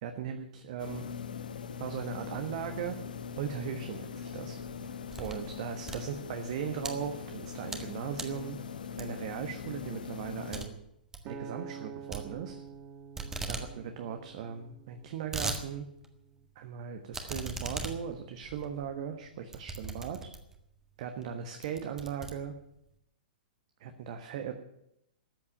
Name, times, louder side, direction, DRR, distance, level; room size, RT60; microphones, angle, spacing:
voice 1, 0.0-1.0 1.8-3.0 3.3-4.6 5.2-8.6 9.0-10.7 11.2-12.6 13.4-15.9 16.5-20.3 21.0-22.5 23.8-24.5, right 8 dB, 45° right, 6 dB, 1.4 m, -38 dB
sound 1, 0.8-10.6, left 7 dB, 65° left, 1.2 m, -41 dB
sound 2, 4.6-5.5 5.8-6.9 7.4-7.9 8.1-8.4 9.0-9.4 9.7-9.8 10.1-10.2 10.5-10.7 11.0-11.3 12.1-12.8 13.1-13.7 14.0-14.1 14.3-14.4 14.9-15.6 16.0-16.1 17.1-20.6 21.2-21.3 21.6-22.9, right 3 dB, 10° right, 1.7 m, -39 dB
Acoustic guitar, 11.3-15.6 16.2-16.5, right 6 dB, 25° right, 1.5 m, -47 dB
14.0 x 8.7 x 9.8 m, 0.81 s
figure-of-eight pair, 110°, 5 cm